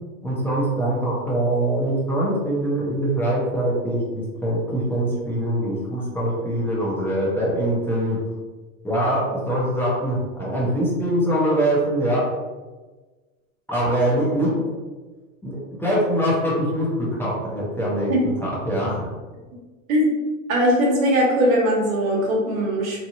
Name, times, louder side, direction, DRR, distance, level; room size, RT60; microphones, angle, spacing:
voice 1, 0.2-8.2 8.8-12.4 13.7-14.7 15.4-19.1, right 1 dB, 5° left, -7 dB, 0.6 m, -23 dB
voice 2, 20.5-23.0, equal, 80° right, -2 dB, 1.1 m, -20 dB
3.0 x 2.6 x 2.6 m, 1.3 s
hypercardioid pair, 120°, 40 cm